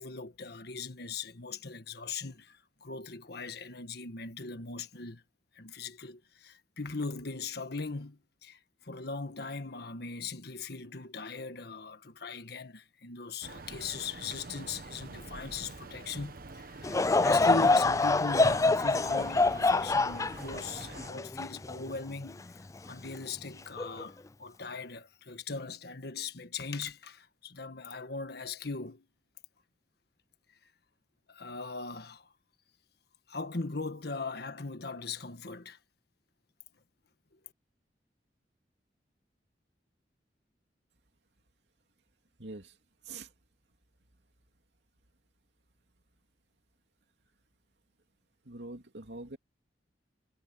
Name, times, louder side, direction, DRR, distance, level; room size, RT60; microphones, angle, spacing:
voice 1, 0.0-5.2 5.5-29.0 31.3-32.3 33.3-35.8, left 4 dB, 65° left, 1.5 m, -39 dB
sound 1, 13.4-21.1, right 3 dB, 55° right, 1.3 m, -46 dB
Laughter / Crowd, 16.8-22.3 22.9-23.0 23.8-24.0, left 3 dB, 20° left, 0.4 m, -26 dB
voice 2, 42.4-42.8 43.0-43.3 48.4-49.4, right 2 dB, 75° right, 2.9 m, -44 dB
head